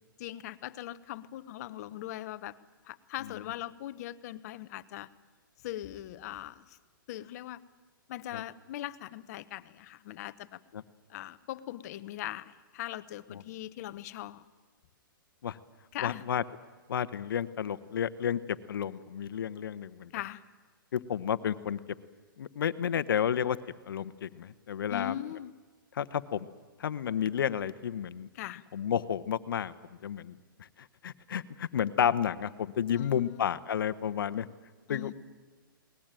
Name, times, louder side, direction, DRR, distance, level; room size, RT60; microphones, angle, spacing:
voice 1, 0.2-2.5 2.8-5.1 5.6-6.8 7.1-7.6 8.1-10.6 11.1-14.4 15.9-16.2 20.1-20.4 24.9-25.5 28.3-28.6 32.9-33.5 34.9-35.1, left 13 dB, 45° left, 15 dB, 1.0 m, -40 dB
voice 2, 16.0-16.4 16.9-20.1 20.9-21.8 22.4-23.6 23.9-25.1 25.9-26.5 26.8-28.3 28.7-29.7 30.0-30.4 30.8-34.5 34.9-35.1, left 8 dB, 75° left, 14 dB, 1.1 m, -31 dB
21.0 x 19.0 x 9.1 m, 1.4 s
hypercardioid pair, 135°, 12 cm